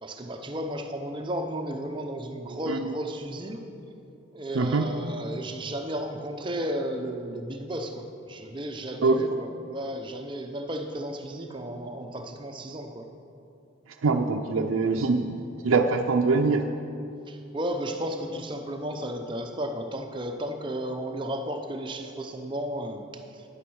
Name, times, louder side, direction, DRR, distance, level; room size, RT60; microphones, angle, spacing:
voice 1, 0.0-3.6 4.3-13.1 17.3-23.1 23.3-23.4, right 1 dB, 25° right, 5 dB, 0.7 m, -34 dB
voice 2, 4.5-4.9 9.0-9.3 14.0-16.7, right 3 dB, 85° right, 3 dB, 0.5 m, -24 dB
10.5 x 9.2 x 6.4 m, 2.7 s
head